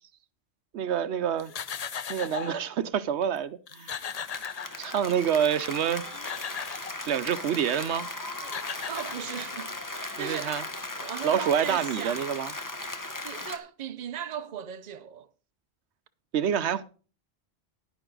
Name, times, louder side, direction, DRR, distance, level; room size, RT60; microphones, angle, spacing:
voice 1, 0.7-1.5 2.1-3.9 4.8-6.0 7.1-8.1 10.2-10.6 11.2-12.5 16.3-16.8, right 8 dB, 80° right, 1.0 m, -27 dB
sound 1, 1.4-2.7 3.4-3.5 3.7-5.2 5.9-7.0 8.1-8.2 8.4-9.7, left 7 dB, 45° left, 0.6 m, -37 dB
Applause, 3.9-13.6, left 2 dB, 20° left, 0.9 m, -38 dB
voice 2, 8.9-10.6 11.0-12.4 13.2-15.3, right 9 dB, 45° right, 0.7 m, -37 dB
10.5 x 9.9 x 3.9 m
omnidirectional pair, 1.1 m